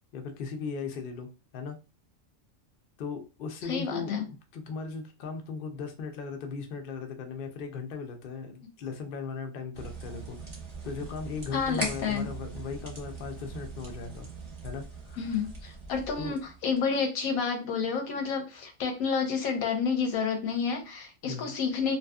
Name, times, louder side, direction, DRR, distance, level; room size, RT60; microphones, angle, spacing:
voice 1, 0.1-1.8 3.0-10.4 10.8-14.3 14.6-15.4 16.2-16.4 21.3-21.5, left 5 dB, 65° left, 5 dB, 0.5 m, -38 dB
voice 2, 3.6-4.2 11.5-12.3 15.2-22.0, left 5 dB, 90° left, 4 dB, 1.1 m, -30 dB
sound 1, 9.7-16.8, right 4 dB, 30° right, 0.6 m, -41 dB
2.7 x 2.3 x 2.3 m, 0.31 s
omnidirectional pair, 1.4 m